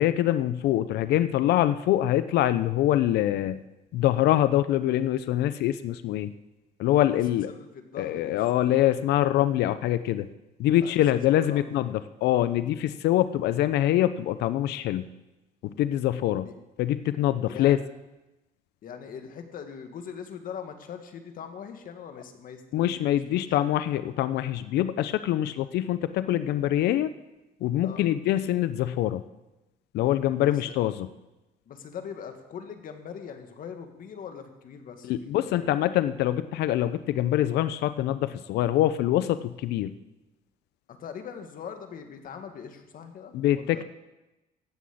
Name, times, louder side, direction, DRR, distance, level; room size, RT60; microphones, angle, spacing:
voice 1, 0.0-3.6 3.9-6.3 6.8-7.5 8.0-10.3 10.6-15.0 15.6-16.5 16.8-17.8 22.7-27.1 27.6-29.2 29.9-31.1 35.1-39.9 43.3-43.8, left 13 dB, 75° left, 13 dB, 0.6 m, -24 dB
voice 2, 7.5-8.8 10.8-11.0 11.3-11.9 12.8-13.0 16.4-16.5 17.5-17.7 18.8-23.5 27.8-28.0 30.5-30.7 31.7-35.8 40.9-43.8, left 7 dB, 55° left, 6 dB, 1.8 m, -42 dB
15.0 x 6.3 x 8.5 m, 1.0 s
cardioid pair, 110°, 17 cm